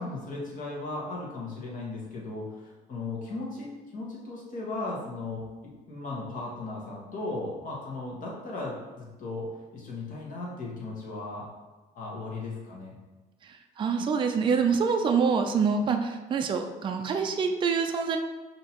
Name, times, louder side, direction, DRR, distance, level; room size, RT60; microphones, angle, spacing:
voice 1, 0.0-5.4 5.9-9.5 9.7-11.5 11.9-12.9, left 2 dB, 50° left, -4 dB, 1.4 m, -36 dB
voice 2, 13.4-18.2, right 5 dB, 30° right, 4 dB, 0.4 m, -26 dB
5.2 x 2.8 x 2.9 m, 1.2 s
cardioid pair, 110°, 17 cm